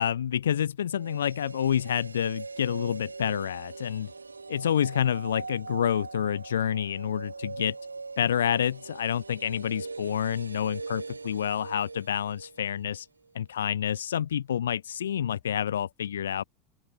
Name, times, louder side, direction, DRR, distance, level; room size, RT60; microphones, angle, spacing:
voice 1, 0.0-4.1 4.5-7.7 8.2-13.1 13.3-16.4, left 9 dB, 75° left, 1.5 m, -28 dB
sound 1, 0.9-13.0 13.3-13.4, right 4 dB, 90° right, 6.4 m, -41 dB
open air
figure-of-eight pair, 80°, 0 cm